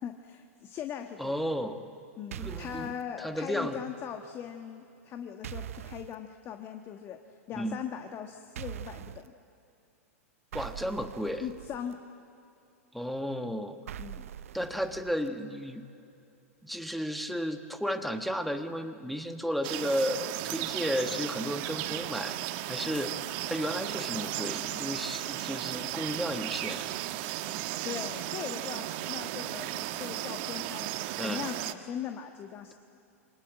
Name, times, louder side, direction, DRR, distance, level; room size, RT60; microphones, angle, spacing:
voice 1, 0.0-1.4 2.2-7.2 7.5-9.3 11.4-12.0 14.0-14.2 27.8-30.9 31.2-32.7, left 9 dB, 30° left, 6 dB, 1.4 m, -40 dB
voice 2, 1.2-1.8 2.3-2.9 3.2-3.8 7.6-7.8 10.5-11.5 12.9-13.8 14.5-15.9 16.6-22.4 22.7-23.1 23.4-26.9 31.2-31.4, equal, ahead, 7 dB, 1.4 m, -33 dB
sound 1, 2.3-3.0 5.4-6.1 8.5-9.3 10.5-11.9 13.9-15.3, right 10 dB, 65° right, 0.6 m, -42 dB
sound 2, 19.6-31.7, right 14 dB, 45° right, 1.2 m, -35 dB
27.5 x 24.0 x 8.8 m, 2.6 s
figure-of-eight pair, 105°, 8 cm